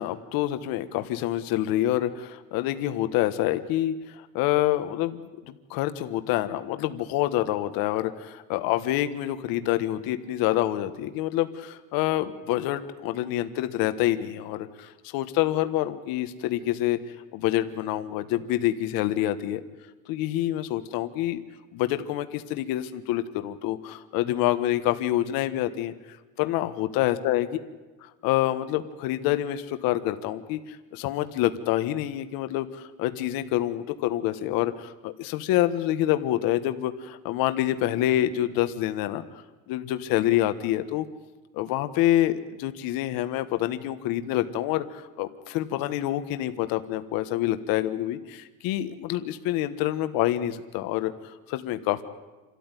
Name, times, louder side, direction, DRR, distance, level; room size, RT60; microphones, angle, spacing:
voice 1, 0.0-5.2 5.5-17.0 17.3-19.6 20.1-21.4 21.7-25.9 26.4-27.5 28.0-39.2 39.7-41.1 41.5-51.1 51.5-52.0, left 13 dB, 70° left, 10 dB, 1.4 m, -27 dB
28.0 x 13.5 x 9.8 m, 1.2 s
cardioid pair, 165°, 36 cm